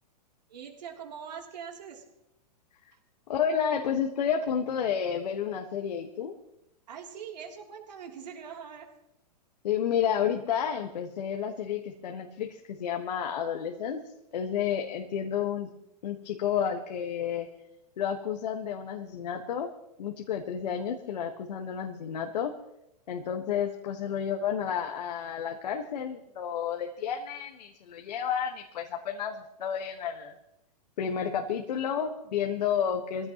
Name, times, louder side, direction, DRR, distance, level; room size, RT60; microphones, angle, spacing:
voice 1, 0.5-2.0 2.9-3.0 6.9-8.9, right 7 dB, 80° right, 1 dB, 3.4 m, -42 dB
voice 2, 3.3-6.3 9.6-14.0 14.3-15.7 16.0-17.5 18.0-19.7 20.0-22.5 23.1-30.3 31.0-33.3, left 8 dB, 75° left, 3 dB, 1.6 m, -31 dB
23.0 x 16.0 x 3.1 m, 0.85 s
hypercardioid pair, 130°, 21 cm